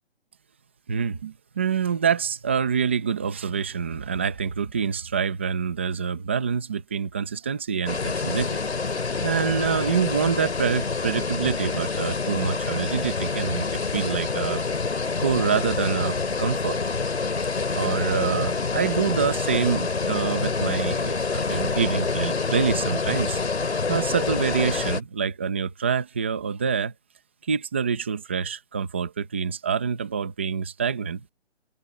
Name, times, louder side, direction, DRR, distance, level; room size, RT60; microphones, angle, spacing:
voice 1, 0.9-8.6 8.9-13.7 13.9-14.6 15.2-16.8 17.7-23.4 23.9-26.9 27.5-31.2, right 6 dB, 10° right, 1.0 m, -26 dB
sound 1, 7.9-25.0, left 4 dB, 70° left, 5.0 m, -27 dB
hypercardioid pair, 175°, 35 cm